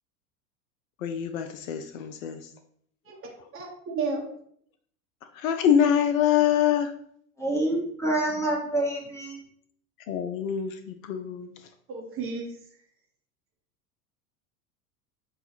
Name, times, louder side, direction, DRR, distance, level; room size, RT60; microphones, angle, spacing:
voice 1, 1.0-2.5 5.3-6.9 10.1-11.5, left 9 dB, 60° left, 7 dB, 0.5 m, -25 dB
voice 2, 3.5-4.3 11.9-12.5, right 4 dB, 30° right, 1 dB, 0.9 m, -32 dB
voice 3, 7.4-9.4, right 1 dB, 5° left, -1 dB, 1.0 m, -27 dB
5.7 x 2.3 x 2.9 m, 0.64 s
figure-of-eight pair, 80°, 46 cm